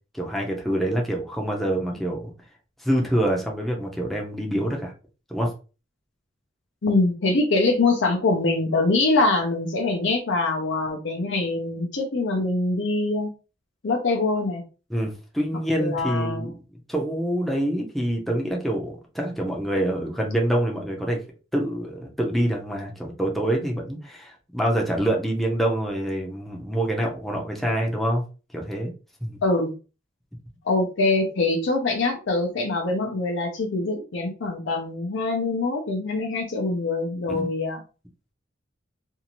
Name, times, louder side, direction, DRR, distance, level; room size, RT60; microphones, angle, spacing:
voice 1, 0.1-2.3 2.8-4.9 5.3-5.5 14.9-16.5 16.9-21.2 21.5-28.2 28.5-28.9 29.2-29.3 37.3-37.5, right 1 dB, ahead, -1 dB, 0.5 m, -26 dB
voice 2, 6.8-13.3 13.8-14.6 15.8-16.4 29.4-29.7 30.6-37.8, left 2 dB, 65° left, 3 dB, 0.6 m, -24 dB
2.7 x 2.4 x 2.9 m, 0.34 s
head